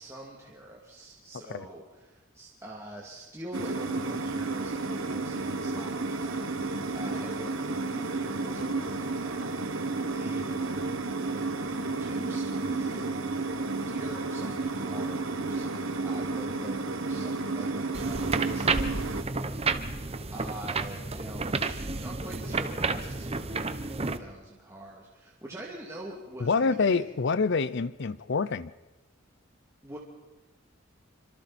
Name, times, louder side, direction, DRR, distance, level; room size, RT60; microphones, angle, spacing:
voice 1, 0.0-9.8 10.1-10.6 11.2-13.4 13.9-27.0 29.8-30.0, right 1 dB, 15° right, -3 dB, 2.6 m, -45 dB
sound 1, 3.5-19.2, right 3 dB, 70° right, 1.5 m, -32 dB
sound 2, 17.9-24.2, right 3 dB, 30° right, 1.0 m, -31 dB
voice 2, 26.4-28.7, left 4 dB, 60° left, 17 dB, 0.6 m, -26 dB
27.5 x 25.5 x 4.3 m, 1.1 s
head